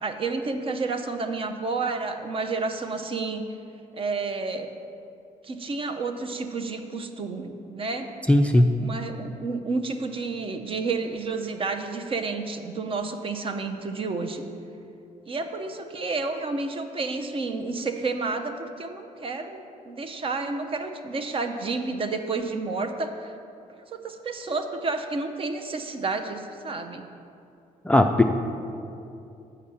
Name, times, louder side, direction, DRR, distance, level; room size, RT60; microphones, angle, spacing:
voice 1, 0.0-3.5 3.9-4.8 5.4-8.1 8.8-14.4 15.3-23.3 23.9-27.0, right 3 dB, 40° right, 6 dB, 0.6 m, -30 dB
voice 2, 8.3-8.7 27.8-28.3, left 1 dB, 10° left, 5 dB, 0.3 m, -18 dB
7.3 x 4.7 x 7.0 m, 2.6 s
cardioid pair, 100°, 14 cm